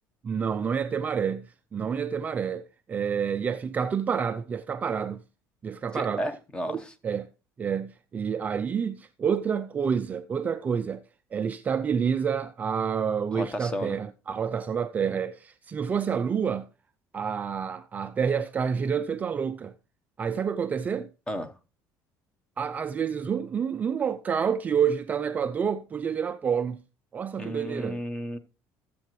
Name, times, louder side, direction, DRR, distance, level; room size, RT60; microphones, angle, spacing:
voice 1, 0.2-5.2 5.6-6.2 6.7-7.3 7.6-11.0 11.3-16.7 17.1-19.7 20.2-21.1 22.6-26.8 27.1-28.0, right 7 dB, 25° right, 0.4 m, -28 dB
voice 2, 5.9-6.9 13.3-14.0 21.3-21.5 27.4-28.4, equal, 15° left, 1.1 m, -33 dB
17.5 x 7.6 x 3.1 m
cardioid pair, 155°, 7 cm